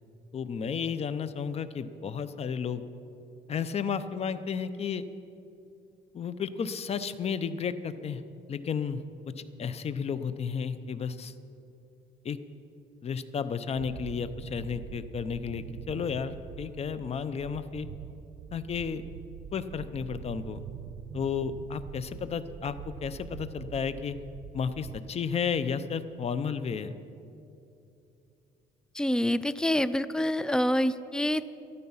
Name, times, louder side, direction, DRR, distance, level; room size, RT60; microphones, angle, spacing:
voice 1, 0.3-2.8 3.5-5.1 6.1-8.2 8.5-9.0 9.6-11.3 12.2-12.4 13.0-17.9 18.5-19.0 19.5-20.7 21.1-24.2 24.5-26.9, left 6 dB, 40° left, 13 dB, 0.7 m, -32 dB
sound 1, 13.8-25.0, right 9 dB, 80° right, 0.7 m, -44 dB
voice 2, 28.9-31.4, left 1 dB, 5° left, 15 dB, 0.4 m, -26 dB
14.0 x 12.5 x 5.6 m, 2.7 s
cardioid pair, 110°, 17 cm